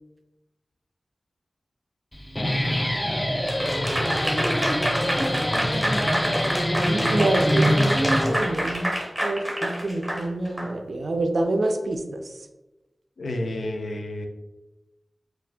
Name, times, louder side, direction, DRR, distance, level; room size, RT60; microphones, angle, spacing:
Guitar, 2.1-8.7, equal, 15° left, 0.3 m, -24 dB
Applause / Crowd, 3.5-10.7, equal, 15° right, 0.7 m, -27 dB
voice 1, 6.9-8.9 9.2-12.0, right 2 dB, 75° right, 4 dB, 0.3 m, -26 dB
voice 2, 13.2-14.3, left 1 dB, 85° left, 3 dB, 0.4 m, -30 dB
2.7 x 2.4 x 3.3 m, 1.0 s
wide cardioid pair, 85°, 0 cm